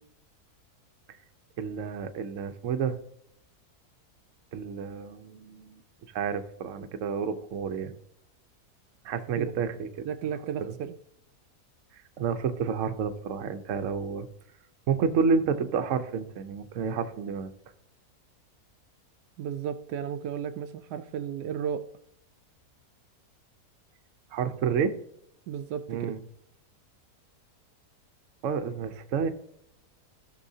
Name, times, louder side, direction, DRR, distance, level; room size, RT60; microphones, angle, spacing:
voice 1, 1.6-3.0 4.5-5.8 6.1-7.9 9.0-10.3 10.6-10.8 11.9-14.3 14.9-17.5 24.3-25.0 25.9-26.2 28.4-29.3, right 6 dB, 60° right, 1.0 m, -30 dB
voice 2, 10.0-10.9 19.4-21.9 25.5-26.1, right 8 dB, 80° right, 1.1 m, -34 dB
16.0 x 6.2 x 2.8 m
omnidirectional pair, 1.7 m